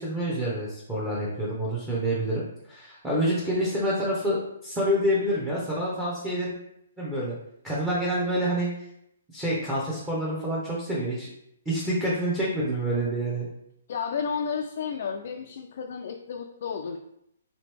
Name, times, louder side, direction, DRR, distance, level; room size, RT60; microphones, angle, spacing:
voice 1, 0.0-6.5 7.0-7.4 7.6-8.7 9.3-11.3 11.7-13.5, right 1 dB, 10° right, -7 dB, 0.8 m, -27 dB
voice 2, 13.9-17.0, left 6 dB, 55° left, 2 dB, 0.4 m, -32 dB
3.3 x 3.0 x 3.3 m, 0.77 s
hypercardioid pair, 155°, 0 cm